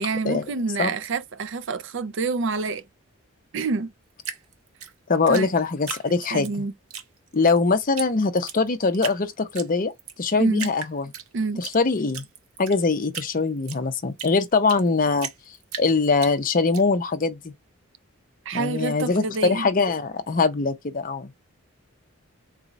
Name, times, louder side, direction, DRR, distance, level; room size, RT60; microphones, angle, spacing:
voice 1, 0.0-2.8 3.5-3.9 5.3-5.5 6.3-6.7 10.4-10.7 11.3-11.6 18.5-19.7, right 4 dB, 55° right, 0.4 m, -27 dB
Drip, 4.2-6.5 6.9-7.6 8.0-8.1 8.4-9.2 9.6-10.2 10.6-11.8 12.1-14.9 15.2-16.8, right 8 dB, 80° right, 0.8 m, -35 dB
voice 2, 5.1-6.5 7.3-9.9 10.2-11.1 11.6-12.2 12.6-15.3 15.8-17.5 18.5-21.3, left 4 dB, 40° left, 0.5 m, -22 dB
4.0 x 2.3 x 4.0 m
head